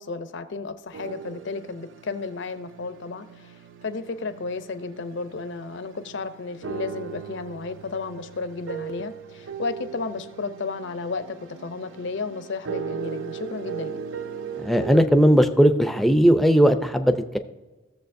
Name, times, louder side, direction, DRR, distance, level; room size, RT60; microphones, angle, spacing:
voice 1, 0.0-3.6 3.8-14.0, left 4 dB, 60° left, 11 dB, 0.6 m, -33 dB
sound 1, 0.9-15.0, right 7 dB, 65° right, 0.4 m, -38 dB
voice 2, 14.6-17.4, equal, ahead, 7 dB, 0.4 m, -18 dB
16.0 x 7.0 x 2.6 m, 1.2 s
head